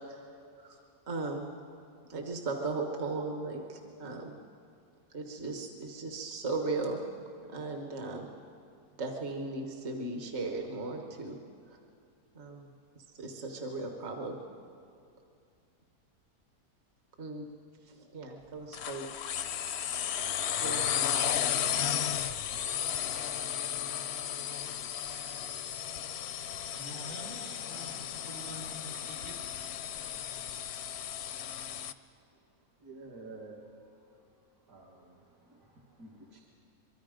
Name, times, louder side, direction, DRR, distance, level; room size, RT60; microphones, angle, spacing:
voice 1, 1.1-1.5 2.1-4.3 5.1-7.0 7.5-8.3 9.0-11.3 12.3-12.7 13.2-14.4 17.2-17.5 18.1-19.1 20.6-21.1, right 3 dB, 50° right, 3 dB, 1.6 m, -36 dB
sound 1, 18.7-31.9, left 9 dB, 60° left, 0.7 m, -34 dB
voice 2, 26.7-29.4, right 1 dB, 80° right, -2 dB, 3.7 m, -46 dB
voice 3, 32.8-33.6 34.7-36.4, right 3 dB, 65° right, -3 dB, 2.2 m, -50 dB
24.5 x 23.0 x 5.1 m, 2.5 s
omnidirectional pair, 1.6 m